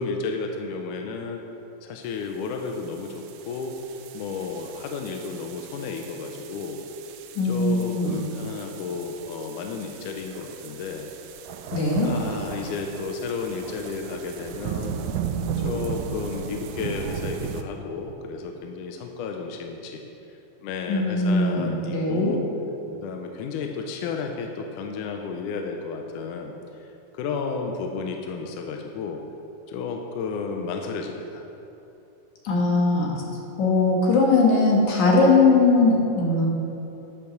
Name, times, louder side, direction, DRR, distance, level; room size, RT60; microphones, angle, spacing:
voice 1, 0.0-1.4 1.8-3.8 4.1-6.8 7.4-11.1 12.0-14.9 15.6-20.0 20.6-22.4 22.9-26.5 26.8-26.9 27.1-29.2 29.7-31.4, left 4 dB, 80° left, 3 dB, 2.1 m, -32 dB
sound 1, 2.5-17.6, right 7 dB, 80° right, 2.0 m, -36 dB
voice 2, 7.4-8.2 11.7-12.1 20.9-22.4 32.4-33.1 33.6-36.5, left 3 dB, 65° left, -2 dB, 2.9 m, -20 dB
10.5 x 7.0 x 6.2 m, 2.9 s
omnidirectional pair, 3.8 m